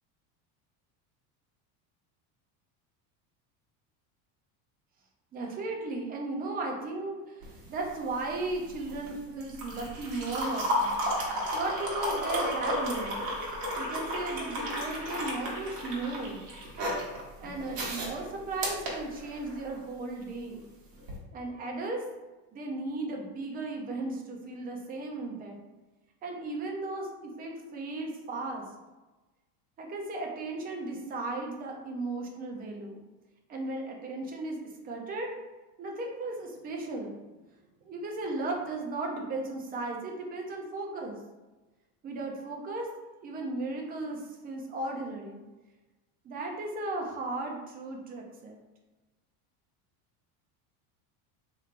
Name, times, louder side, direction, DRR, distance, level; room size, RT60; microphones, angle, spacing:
voice 1, 5.3-11.0 11.5-13.3 13.8-16.5 17.4-20.6 21.3-22.0 22.5-25.6 26.2-28.6 29.8-33.0 33.5-35.3 35.8-37.2 37.8-41.2 42.0-42.9 43.2-45.4 46.2-48.6, right 2 dB, 20° right, 1 dB, 0.4 m, -36 dB
sound 1, 7.4-19.7 21.0-21.2, equal, 60° right, 1.3 m, -33 dB
4.4 x 3.1 x 2.4 m, 1.1 s
cardioid pair, 155°, 44 cm